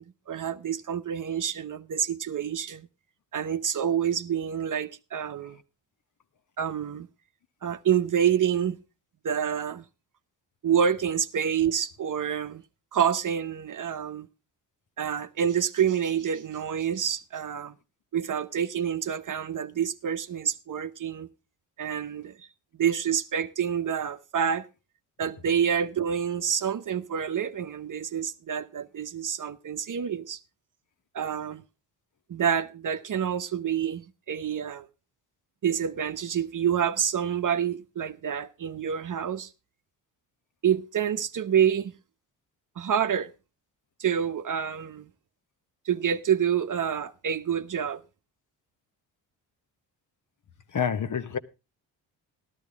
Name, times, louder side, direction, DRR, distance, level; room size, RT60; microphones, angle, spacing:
voice 1, 0.0-2.9 3.3-5.6 6.6-7.1 7.6-8.8 9.2-9.9 10.6-12.6 12.9-14.3 15.0-17.7 18.1-21.3 21.8-22.5 22.8-24.7 25.2-30.4 31.1-31.6 32.3-34.9 35.6-39.5 40.6-41.9 42.8-43.3 44.0-45.1 45.8-48.0, right 8 dB, 45° right, 0.9 m, -27 dB
voice 2, 50.7-51.4, left 7 dB, 40° left, 1.1 m, -27 dB
13.0 x 12.0 x 3.5 m
supercardioid pair, 55°, 45 cm